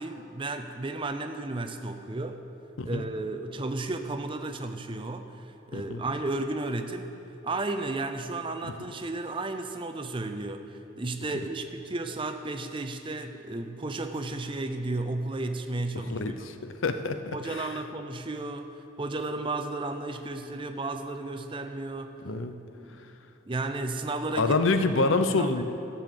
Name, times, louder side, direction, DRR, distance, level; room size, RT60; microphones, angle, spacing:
voice 1, 0.0-2.4 2.8-7.1 7.4-16.4 17.3-22.1 22.8-23.0 23.5-24.6 24.9-25.6, right 2 dB, 25° right, 7 dB, 0.6 m, -33 dB
voice 2, 16.1-17.8 22.2-22.5 24.4-25.6, left 3 dB, 75° left, 9 dB, 0.7 m, -27 dB
13.5 x 7.0 x 7.5 m, 2.9 s
head